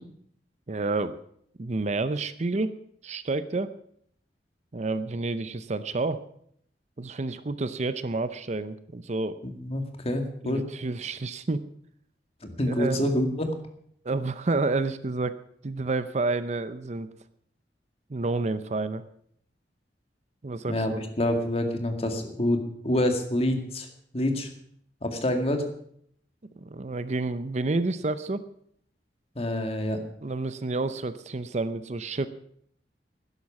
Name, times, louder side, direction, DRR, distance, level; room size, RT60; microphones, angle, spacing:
voice 1, 0.7-1.1 1.6-2.7 3.0-3.7 4.7-6.2 7.0-9.4 10.4-11.6 12.7-13.1 14.0-15.4 15.6-17.1 18.1-19.0 20.4-21.0 26.6-28.4 30.2-32.3, right 3 dB, 40° right, 13 dB, 0.6 m, -29 dB
voice 2, 9.4-10.6 12.4-13.5 20.7-23.9 24.1-24.5 25.0-25.6 29.4-30.0, left 1 dB, 35° left, 5 dB, 2.0 m, -27 dB
12.5 x 10.5 x 7.2 m, 0.67 s
head